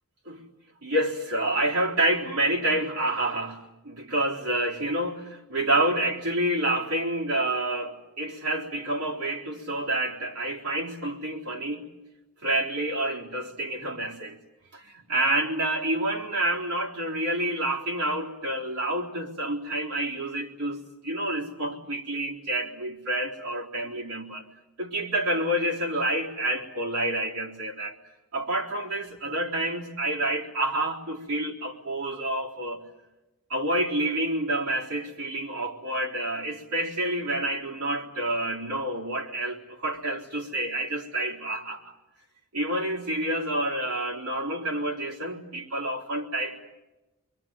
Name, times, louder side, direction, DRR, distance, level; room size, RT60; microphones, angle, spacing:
voice 1, 0.8-11.9 12.4-14.4 14.7-24.4 24.8-28.0 28.3-32.8 33.5-41.8 42.5-46.7, right 1 dB, 80° right, -3 dB, 4.0 m, -28 dB
27.0 x 22.5 x 9.1 m, 1.0 s
head